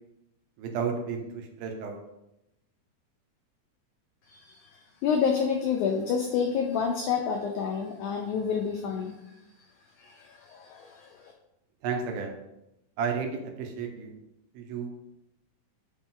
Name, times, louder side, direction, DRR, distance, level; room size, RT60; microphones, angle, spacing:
voice 1, 0.6-2.0 11.8-12.4 13.0-14.1 14.5-14.9, right 6 dB, 80° right, 2 dB, 2.7 m, -32 dB
voice 2, 4.3-4.7 5.0-9.2 10.0-11.1, left 6 dB, 90° left, 3 dB, 1.7 m, -28 dB
8.1 x 4.5 x 3.7 m, 0.87 s
omnidirectional pair, 4.3 m